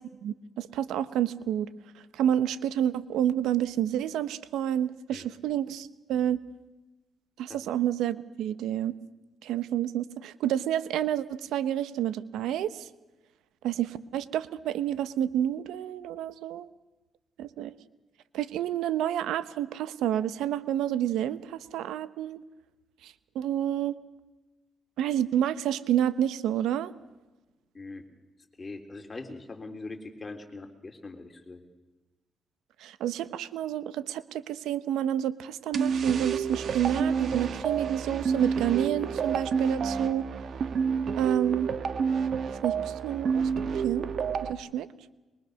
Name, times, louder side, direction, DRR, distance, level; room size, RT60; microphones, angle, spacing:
voice 1, 0.2-1.7 2.1-6.4 7.4-8.9 9.4-12.9 13.6-16.7 17.4-17.7 18.3-22.4 23.0-24.0 25.0-26.9 32.8-40.3 41.2-41.7 42.5-43.5 43.8-44.1 44.5-44.9, right 10 dB, 85° right, 14 dB, 1.1 m, -29 dB
voice 2, 28.6-31.6, left 3 dB, 25° left, 5 dB, 3.5 m, -42 dB
sound 1, 35.7-44.5, right 6 dB, 55° right, 1.4 m, -29 dB
23.0 x 22.5 x 6.5 m, 1.1 s
cardioid pair, 90°, 0 cm